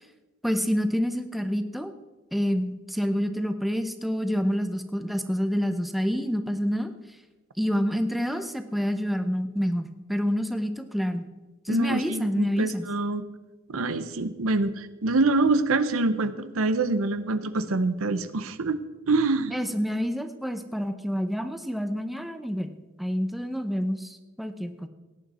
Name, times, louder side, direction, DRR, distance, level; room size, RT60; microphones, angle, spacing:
voice 1, 0.4-1.9 2.3-6.9 7.6-11.2 11.6-12.8 19.5-22.7 23.0-24.9, equal, ahead, 8 dB, 0.7 m, -28 dB
voice 2, 11.7-13.3 13.7-18.8 19.1-19.5, right 3 dB, 90° right, 12 dB, 0.8 m, -25 dB
17.0 x 9.9 x 4.3 m, 1.2 s
head